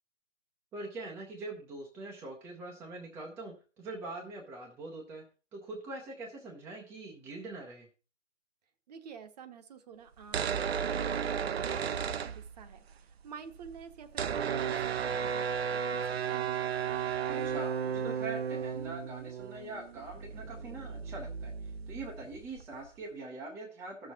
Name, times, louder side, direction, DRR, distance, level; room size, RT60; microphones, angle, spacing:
voice 1, 0.7-5.2 5.5-7.9 17.3-24.1, right 2 dB, 5° right, 0.6 m, -43 dB
voice 2, 8.9-16.6, right 7 dB, 35° right, 1.0 m, -50 dB
sound 1, 10.2-12.9 13.2-13.3 13.5-22.9, right 7 dB, 55° right, 0.7 m, -34 dB
14.0 x 6.5 x 4.1 m
figure-of-eight pair, 140°, 37 cm